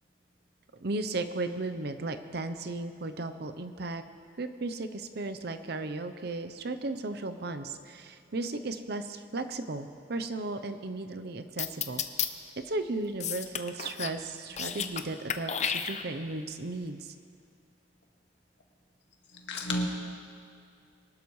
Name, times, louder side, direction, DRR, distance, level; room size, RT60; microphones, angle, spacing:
voice 1, 0.8-4.0 4.4-12.0 12.7-17.1, right 2 dB, 55° right, 9 dB, 0.7 m, -35 dB
sound 1, 11.6-12.3 13.2-14.2 14.5-15.0 15.3-16.3, left 8 dB, 35° left, 0.5 m, -32 dB
voice 2, 19.5-19.9, left 1 dB, 65° left, 0 dB, 1.9 m, -32 dB
23.0 x 12.5 x 3.2 m, 2.4 s
head